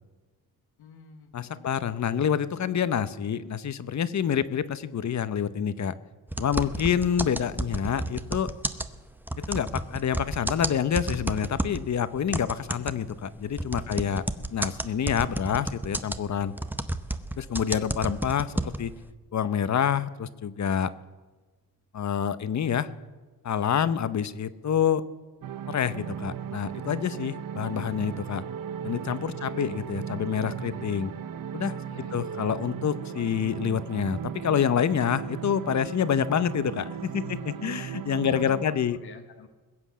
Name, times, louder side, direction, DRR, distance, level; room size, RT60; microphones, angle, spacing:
voice 1, 0.8-1.8 6.5-6.7 13.8-14.0 29.2-29.6 30.7-30.9 31.9-32.3 37.2-37.8 38.3-39.5, left 6 dB, 80° left, 4 dB, 1.2 m, -49 dB
voice 2, 1.3-5.9 6.4-8.5 9.4-14.2 14.5-16.5 17.4-18.9 19.3-20.9 21.9-22.9 23.4-25.0 25.7-28.4 28.8-31.1 31.5-31.8 32.1-39.0, left 8 dB, 45° left, 15 dB, 0.8 m, -27 dB
sound 1, 6.3-11.9 12.3-19.0, right 1 dB, 5° right, 0.7 m, -31 dB
sound 2, 25.4-38.7, right 8 dB, 60° right, 0.8 m, -37 dB
21.0 x 7.9 x 7.5 m, 1.3 s
cardioid pair, 85°, 38 cm